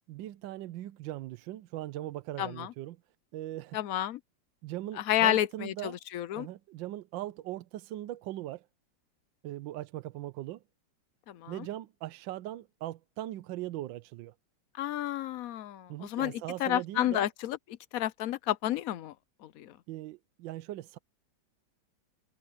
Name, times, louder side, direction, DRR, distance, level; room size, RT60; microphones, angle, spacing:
voice 1, 0.1-3.0 3.3-3.8 4.6-6.0 6.4-8.7 9.4-10.6 11.5-14.3 15.9-17.3 19.9-21.0, right 14 dB, 75° right, 1.3 m, -40 dB
voice 2, 2.4-2.7 3.7-4.2 5.0-6.5 11.3-11.7 14.8-17.6 17.9-19.1 19.4-19.7, left 13 dB, 70° left, 0.8 m, -31 dB
omnidirectional pair, 2.1 m